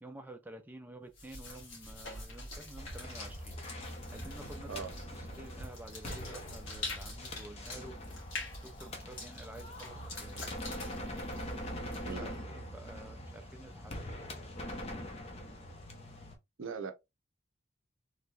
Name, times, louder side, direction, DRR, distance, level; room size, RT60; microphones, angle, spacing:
voice 1, 0.0-3.6 4.1-8.0 8.6-10.8 12.1-14.0, right 1 dB, 10° right, 0.4 m, -50 dB
sound 1, 1.1-12.3, left 2 dB, 90° left, 1.6 m, -46 dB
sound 2, 2.8-16.4, equal, 30° left, 0.7 m, -43 dB
voice 2, 12.1-12.4 16.6-16.9, right 5 dB, 85° right, 0.6 m, -40 dB
3.2 x 2.8 x 2.3 m
head